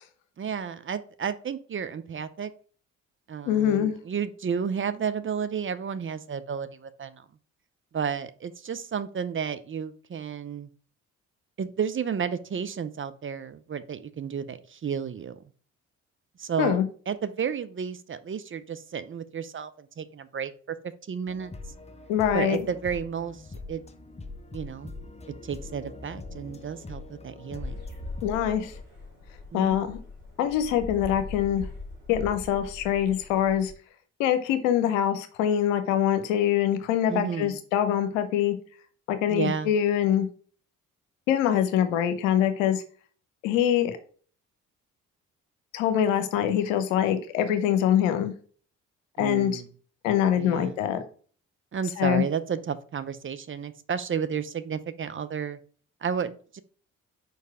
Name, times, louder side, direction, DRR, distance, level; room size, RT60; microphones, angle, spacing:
voice 1, 0.4-2.5 3.3-7.2 7.9-10.7 11.6-15.4 16.4-16.8 17.1-20.8 21.1-21.5 22.3-23.4 23.7-23.8 24.5-24.9 25.4-27.8 29.5-29.8 37.1-37.6 39.3-39.7 49.2-49.7 50.4-50.8 51.7-55.6 56.0-56.6, right 7 dB, 30° right, 12 dB, 0.7 m, -32 dB
voice 2, 3.5-3.9 16.6-16.9 22.1-22.6 28.2-28.7 29.5-30.0 30.4-31.6 32.1-33.7 34.2-38.5 39.1-40.3 41.3-42.8 43.4-44.0 45.7-48.3 49.2-49.6 50.0-51.0 52.0-52.2, left 10 dB, 80° left, 9 dB, 0.8 m, -24 dB
sound 1, 21.3-28.8, left 3 dB, 15° left, 0.9 m, -43 dB
sound 2, 27.6-33.7, left 2 dB, 90° right, 1.8 m, -41 dB
4.8 x 4.6 x 4.7 m, 0.43 s
hypercardioid pair, 45°, 38 cm